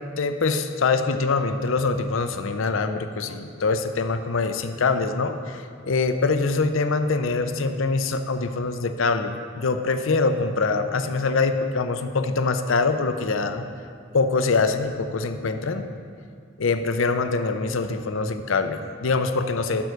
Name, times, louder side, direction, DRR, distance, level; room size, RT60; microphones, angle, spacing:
voice 1, 0.0-13.6 14.1-15.8 16.6-19.8, left 4 dB, 70° left, 8 dB, 0.6 m, -24 dB
11.0 x 4.8 x 6.5 m, 2.2 s
head